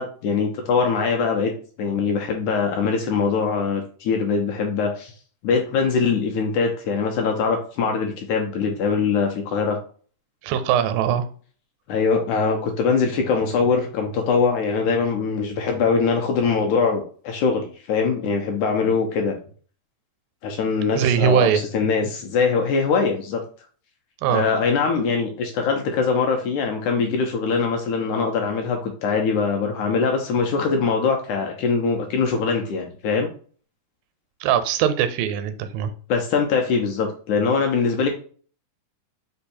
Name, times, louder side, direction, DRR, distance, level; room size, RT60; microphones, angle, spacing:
voice 1, 0.0-1.5 1.8-5.1 5.4-9.8 11.9-19.3 20.4-21.5 21.7-23.4 24.3-33.3 36.1-38.1, left 5 dB, 80° left, 3 dB, 1.8 m, -22 dB
voice 2, 10.4-11.3 21.0-21.6 24.2-24.5 34.4-35.9, right 9 dB, 90° right, 10 dB, 2.3 m, -21 dB
5.3 x 2.2 x 4.1 m, 0.43 s
omnidirectional pair, 3.9 m